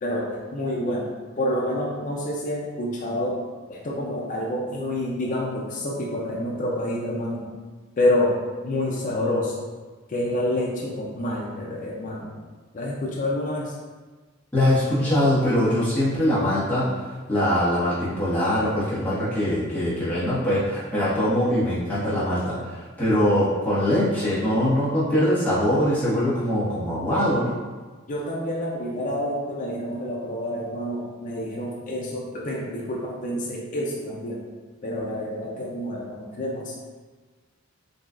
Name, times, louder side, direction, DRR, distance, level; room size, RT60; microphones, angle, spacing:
voice 1, 0.0-1.1 1.4-3.4 3.7-7.4 8.0-9.7 10.1-12.3 12.7-13.7 28.1-34.4 34.8-36.7, left 1 dB, 40° left, -3 dB, 0.4 m, -28 dB
voice 2, 14.5-16.9 17.3-27.5, left 1 dB, 10° left, -11 dB, 1.1 m, -22 dB
3.9 x 2.3 x 2.4 m, 1.4 s
head